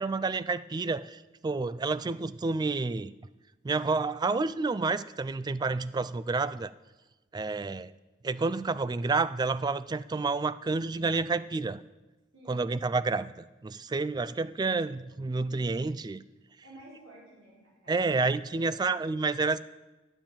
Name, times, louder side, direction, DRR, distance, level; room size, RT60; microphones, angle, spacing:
voice 1, 0.0-3.1 3.6-6.7 7.3-7.9 8.2-11.8 12.5-16.2 17.9-19.6, right 3 dB, 20° right, 16 dB, 0.3 m, -29 dB
voice 2, 12.3-12.7 16.6-19.4, right 1 dB, 90° right, -6 dB, 4.1 m, -53 dB
10.0 x 7.3 x 8.7 m, 1.1 s
head